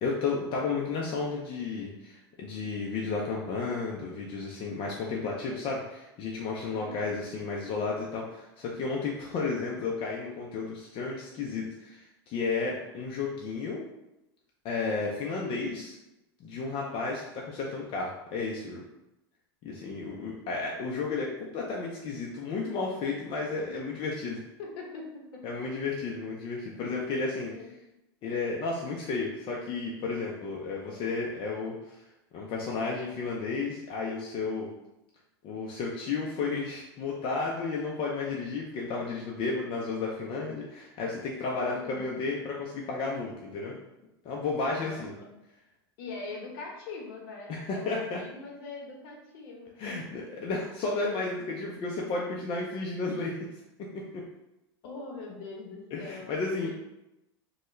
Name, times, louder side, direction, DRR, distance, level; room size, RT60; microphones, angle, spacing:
voice 1, 0.0-13.8 14.6-16.0 16.4-18.8 19.6-24.4 25.4-27.5 28.2-32.0 32.3-34.7 35.4-43.7 44.2-45.1 47.5-48.2 49.8-53.3 53.9-54.0 55.9-56.7, left 4 dB, 40° left, -2 dB, 0.5 m, -33 dB
voice 2, 6.8-7.1 23.7-23.9 24.6-25.6 25.9-26.0 27.3-27.7 41.8-42.2 44.7-45.3 46.0-50.0 50.3-50.4 54.8-56.7, left 3 dB, 65° left, 0 dB, 0.9 m, -42 dB
3.2 x 2.2 x 3.0 m, 0.92 s
hypercardioid pair, 105°, 13 cm